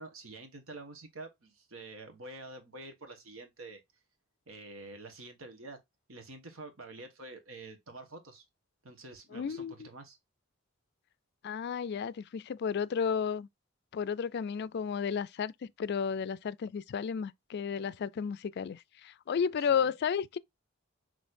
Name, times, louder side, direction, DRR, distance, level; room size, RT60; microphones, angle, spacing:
voice 1, 0.0-3.8 4.5-5.8 6.1-8.5 8.8-10.2 19.8-19.9, right 2 dB, 90° right, 1.4 m, -47 dB
voice 2, 9.3-9.9 11.4-13.5 13.9-20.4, left 6 dB, 55° left, 0.3 m, -33 dB
6.3 x 3.1 x 2.5 m
head